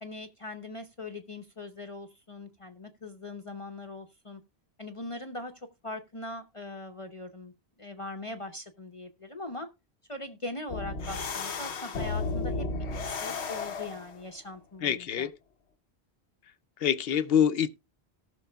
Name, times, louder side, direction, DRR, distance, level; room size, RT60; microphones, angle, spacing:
voice 1, 0.0-4.4 4.8-7.5 7.8-9.7 10.1-12.7 13.0-15.3, left 2 dB, 35° left, 0.8 m, -41 dB
sound 1, 10.7-14.2, left 3 dB, 85° left, 1.2 m, -33 dB
voice 2, 14.8-15.3 16.8-17.7, left 8 dB, 65° left, 0.8 m, -25 dB
18.0 x 6.2 x 2.2 m
omnidirectional pair, 1.1 m